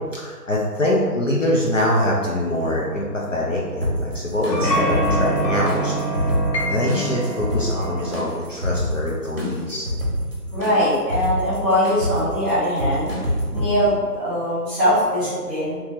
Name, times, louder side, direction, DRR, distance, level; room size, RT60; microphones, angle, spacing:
voice 1, 0.1-6.3 6.6-9.9 13.4-13.7, left 1 dB, 55° left, -4 dB, 0.5 m, -24 dB
sound 1, 2.6-4.0 4.5-8.3, right 1 dB, 80° left, 1.0 m, -26 dB
sound 2, 3.8-13.7, equal, 35° right, 0.7 m, -27 dB
voice 2, 10.5-15.8, equal, 5° right, -16 dB, 1.4 m, -21 dB
3.0 x 2.7 x 3.5 m, 1.5 s
figure-of-eight pair, 165°, 48 cm